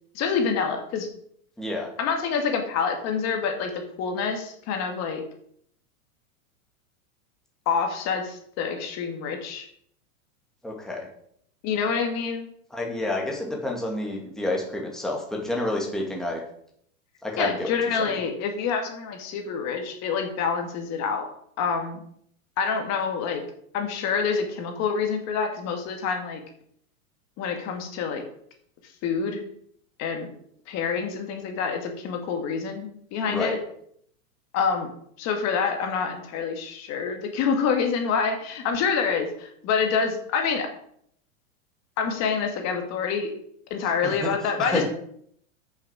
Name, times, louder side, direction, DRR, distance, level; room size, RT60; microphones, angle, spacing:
voice 1, 0.2-1.1 2.0-3.7 4.0-5.2 7.7-9.7 11.6-12.5 17.4-21.3 21.6-22.0 22.6-23.4 23.7-26.4 27.4-28.2 29.0-29.4 30.0-30.3 30.7-33.6 34.5-34.9 35.2-40.7 42.0-43.3 43.7-44.8, left 6 dB, 40° left, 4 dB, 1.9 m, -27 dB
voice 2, 1.6-1.9 10.6-11.1 12.7-16.4 17.2-17.7 18.0-18.1 33.3-33.6 44.0-44.3 44.6-44.8, left 1 dB, ahead, -1 dB, 2.0 m, -29 dB
8.3 x 6.7 x 6.1 m, 0.66 s
supercardioid pair, 135°, 41 cm